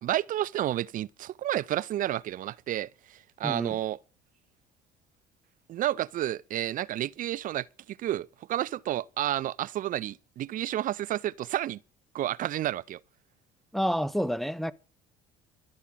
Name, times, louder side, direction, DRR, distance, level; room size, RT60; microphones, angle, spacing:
voice 1, 0.0-2.9 3.4-4.0 5.7-11.8 12.1-13.0, right 13 dB, 45° right, 0.6 m, -30 dB
voice 2, 3.4-3.8 13.7-14.7, equal, ahead, 1.0 m, -29 dB
12.5 x 8.2 x 7.7 m
hypercardioid pair, 60°, 18 cm